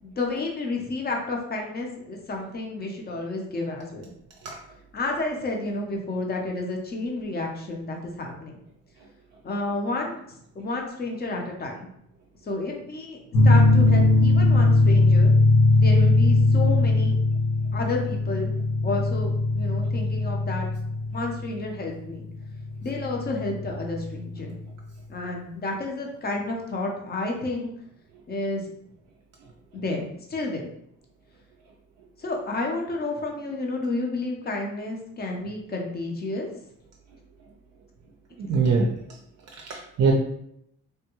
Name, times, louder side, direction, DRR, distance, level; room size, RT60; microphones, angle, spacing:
voice 1, 0.0-4.1 4.9-8.6 9.4-10.2 10.6-11.9 12.4-13.2 13.4-15.3 15.8-17.2 17.7-18.5 18.8-20.7 21.1-22.3 22.8-24.6 25.1-27.7 28.3-28.6 29.7-30.6 32.2-36.5, left 2 dB, 30° left, 1 dB, 0.6 m, -30 dB
sound 1, 13.3-24.5, left 2 dB, 75° left, 0.8 m, -20 dB
voice 2, 38.4-38.9 39.6-40.1, right 4 dB, 60° right, 0 dB, 0.5 m, -22 dB
3.5 x 2.2 x 2.9 m, 0.75 s
cardioid pair, 145°, 31 cm